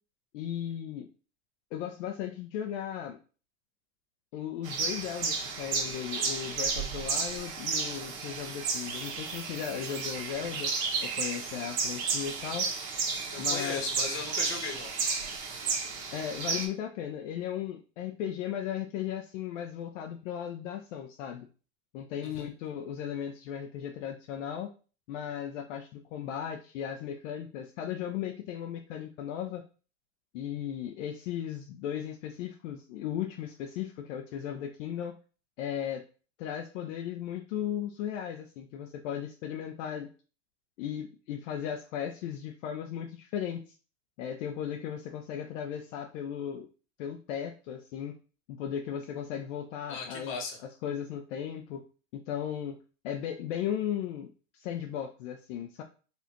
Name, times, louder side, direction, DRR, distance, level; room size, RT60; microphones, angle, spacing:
voice 1, 0.3-1.1 1.7-3.2 4.3-10.7 11.0-12.7 13.4-13.8 16.1-21.5 21.9-24.7 25.1-29.6 30.3-35.1 35.6-36.0 36.4-40.1 40.8-43.6 44.2-46.7 47.0-48.2 48.5-50.4 50.8-51.8 52.1-52.8 53.0-55.8, left 9 dB, 60° left, 3 dB, 0.6 m, -36 dB
sound 1, 4.6-16.7, right 4 dB, 50° right, 1.2 m, -33 dB
voice 2, 13.3-14.9 22.2-22.5 49.9-50.6, left 4 dB, 30° left, 2 dB, 1.2 m, -37 dB
4.2 x 2.5 x 2.9 m, 0.36 s
hypercardioid pair, 110°, 41 cm